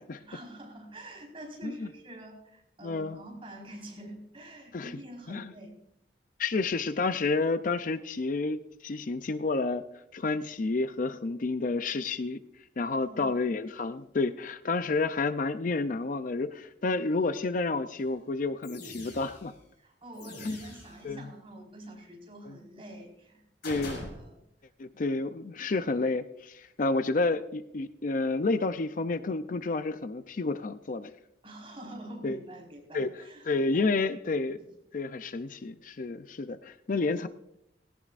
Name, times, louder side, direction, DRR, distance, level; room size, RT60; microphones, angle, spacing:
voice 1, 0.2-5.7 13.0-13.3 19.8-23.4 24.1-24.4 24.9-25.2 31.4-33.5 33.7-34.0 34.6-34.7 37.0-37.1, right 1 dB, 30° right, 0 dB, 4.5 m, -46 dB
voice 2, 2.8-3.2 4.7-5.0 5.3-5.5 6.4-9.8 10.1-12.4 12.8-19.5 20.4-20.6 21.0-21.3 22.5-22.6 23.6-24.0 24.8-31.1 32.2-32.4 32.9-34.6 34.9-37.3, left 3 dB, 45° left, 11 dB, 0.5 m, -30 dB
sound 1, 18.0-18.1 18.6-19.6 20.1-21.1 23.6-24.1, left 1 dB, 65° left, 6.7 m, -43 dB
18.5 x 17.0 x 2.5 m, 0.80 s
head